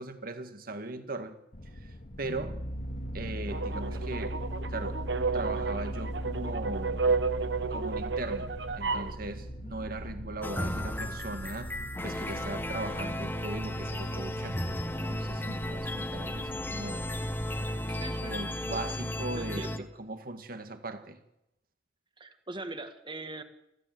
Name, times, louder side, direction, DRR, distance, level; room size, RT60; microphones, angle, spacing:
voice 1, 0.0-1.4 1.8-1.9 2.2-2.6 3.1-4.4 4.7-5.0 5.3-7.1 7.7-11.7 12.0-14.6 15.0-17.1 18.2-19.7 20.0-21.2, right 2 dB, 55° right, 2.1 m, -39 dB
sound 1, 1.5-17.7, equal, 50° left, 2.2 m, -39 dB
sound 2, 3.5-9.1, right 4 dB, 85° right, 1.1 m, -32 dB
sound 3, 10.4-19.8, left 1 dB, 10° left, 1.4 m, -34 dB
voice 2, 17.9-18.8 19.3-19.9 22.2-23.4, right 2 dB, 30° right, 2.0 m, -42 dB
26.0 x 15.0 x 8.0 m
head